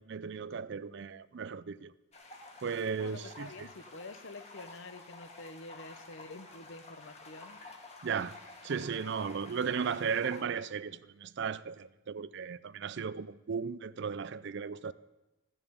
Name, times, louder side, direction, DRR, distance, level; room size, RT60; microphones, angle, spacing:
voice 1, 0.0-1.9 2.6-3.5 8.0-8.3 8.6-14.9, right 6 dB, 55° right, 0.4 m, -35 dB
sound 1, 2.1-10.4, left 3 dB, 30° left, 1.9 m, -51 dB
voice 2, 3.0-7.6 9.0-9.1, left 2 dB, 60° left, 0.9 m, -48 dB
15.0 x 7.0 x 8.6 m
head